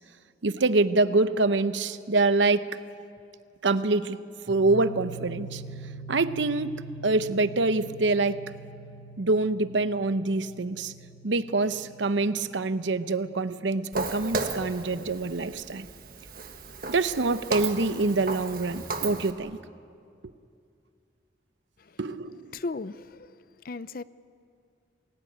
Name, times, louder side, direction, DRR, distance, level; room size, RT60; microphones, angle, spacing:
voice 1, 0.4-2.7 3.6-4.2 4.5-5.6 6.1-8.4 9.2-10.9 11.2-15.9 16.9-19.6 22.0-22.5, right 3 dB, 80° right, 0.8 m, -25 dB
sound 1, 4.5-14.0, right 3 dB, ahead, 6.7 m, -44 dB
Walk footsteps, 13.9-19.3, right 3 dB, 50° right, 1.6 m, -35 dB
voice 2, 22.5-23.4 23.6-24.0, left 3 dB, 50° left, 0.5 m, -36 dB
28.0 x 17.0 x 9.2 m
head